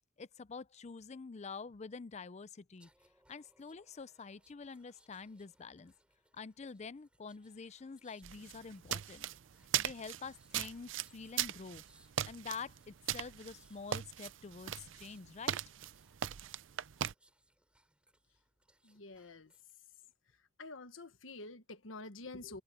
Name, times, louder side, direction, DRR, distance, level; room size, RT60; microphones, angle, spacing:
voice 1, 0.2-2.9 3.3-5.9 6.3-9.3 9.8-11.8 12.2-15.6, left 5 dB, 35° left, 0.5 m, -47 dB
sound 1, 2.7-19.7 20.1-20.4, right 1 dB, 5° right, 5.2 m, -72 dB
sound 2, 8.2-17.1, right 10 dB, 70° right, 0.5 m, -39 dB
voice 2, 18.8-19.5 20.6-22.6, left 3 dB, 85° left, 1.4 m, -48 dB
open air
head